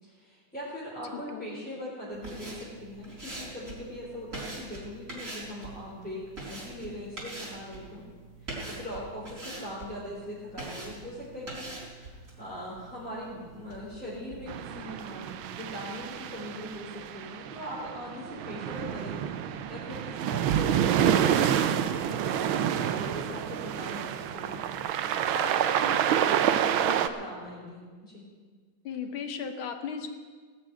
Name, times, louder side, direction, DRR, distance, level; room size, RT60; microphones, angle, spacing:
voice 1, 0.0-8.0 8.4-28.2, equal, 5° left, -8 dB, 3.5 m, -41 dB
voice 2, 1.1-1.5 28.8-30.1, left 6 dB, 80° left, 7 dB, 2.0 m, -36 dB
sound 1, 2.1-14.8, right 2 dB, 40° right, 4.3 m, -43 dB
sound 2, 14.5-27.1, right 9 dB, 85° right, 1.5 m, -28 dB
18.0 x 6.2 x 9.1 m, 1.5 s
omnidirectional pair, 2.2 m